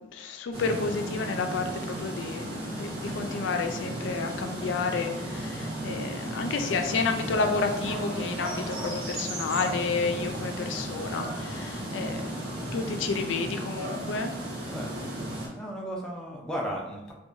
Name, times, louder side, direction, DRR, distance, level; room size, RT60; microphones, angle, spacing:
voice 1, 0.0-12.4 12.7-14.3, left 4 dB, 80° left, 6 dB, 0.3 m, -31 dB
sound 1, 0.5-15.5, right 1 dB, 50° right, 0.7 m, -34 dB
voice 2, 15.5-17.1, equal, 5° left, -2 dB, 0.4 m, -35 dB
2.8 x 2.2 x 2.5 m, 1.0 s
head